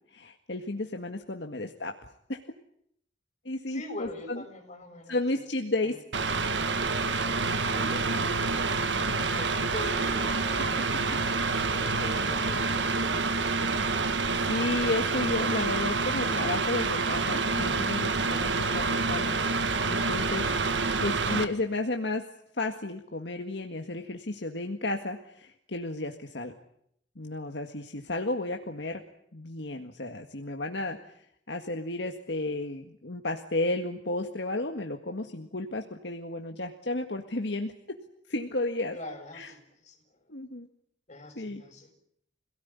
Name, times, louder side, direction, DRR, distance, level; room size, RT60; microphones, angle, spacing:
voice 1, 0.1-2.4 3.5-4.4 5.1-6.0 11.5-11.6 14.4-20.4 21.0-22.3 22.5-26.5 27.2-29.0 29.3-31.0 31.5-38.0 38.3-39.0 39.3-39.5 40.3-40.7 41.4-41.6, left 2 dB, 70° left, 4 dB, 1.9 m, -33 dB
voice 2, 3.7-5.4 5.8-6.0 7.7-10.9 11.6-13.4 21.2-21.5 38.9-40.0 41.1-41.9, left 1 dB, 40° left, 4 dB, 6.8 m, -43 dB
Mechanical fan, 6.1-21.4, right 4 dB, 75° right, 1.7 m, -27 dB
26.5 x 18.0 x 9.7 m, 0.72 s
head